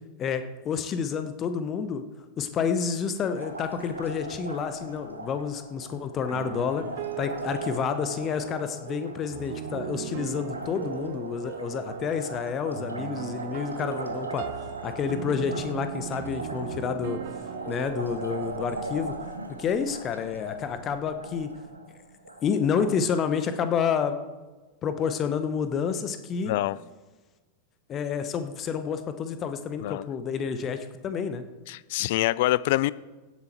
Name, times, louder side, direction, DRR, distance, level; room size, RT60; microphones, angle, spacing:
voice 1, 0.2-2.0 2.4-6.9 7.2-14.5 14.8-17.2 17.7-19.1 19.6-21.5 22.4-24.2 24.8-26.5 27.9-31.4, left 6 dB, 30° left, 10 dB, 1.1 m, -29 dB
Liquid, 3.4-22.9, right 2 dB, 80° right, 1.1 m, -40 dB
sound 1, 6.3-18.9, right 13 dB, 50° right, 0.4 m, -38 dB
voice 2, 26.4-26.8 29.8-30.0 31.7-32.9, left 17 dB, 50° left, 20 dB, 0.4 m, -25 dB
16.0 x 7.8 x 4.4 m, 1.3 s
figure-of-eight pair, 90°, 0 cm